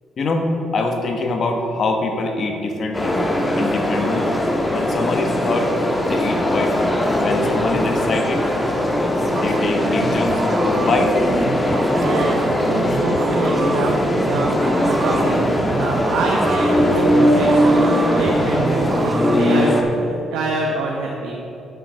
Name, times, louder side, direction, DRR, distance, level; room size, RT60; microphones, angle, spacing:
voice 1, 0.2-3.2 3.6-4.3 4.7-5.7 6.0-8.4 9.3-11.2, left 3 dB, 55° left, 4 dB, 1.2 m, -24 dB
sound 1, 2.9-19.8, left 1 dB, 15° left, 1.3 m, -20 dB
sound 2, 9.3-19.3, right 5 dB, 55° right, 0.5 m, -29 dB
voice 2, 11.9-14.0 14.3-15.5 15.8-21.4, right 3 dB, 90° right, -1 dB, 0.9 m, -25 dB
9.5 x 5.8 x 6.5 m, 2.8 s
cardioid pair, 90°, 0 cm